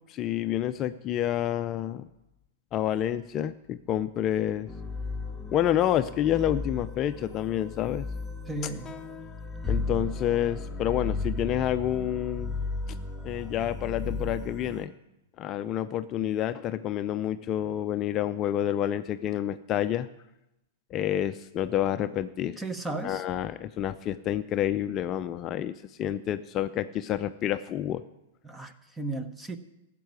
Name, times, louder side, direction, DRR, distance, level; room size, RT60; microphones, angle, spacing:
voice 1, 0.1-2.1 2.7-4.7 5.5-8.1 9.7-12.6 13.2-14.9 15.4-20.1 20.9-22.6 23.0-28.0, left 11 dB, 35° left, 10 dB, 0.5 m, -28 dB
sound 1, 4.7-14.9, left 3 dB, 10° left, 1.3 m, -35 dB
voice 2, 8.5-8.9 22.6-23.2 28.4-29.6, right 2 dB, 10° right, 9 dB, 1.1 m, -35 dB
13.5 x 7.6 x 9.5 m, 0.93 s
hypercardioid pair, 120°, 0 cm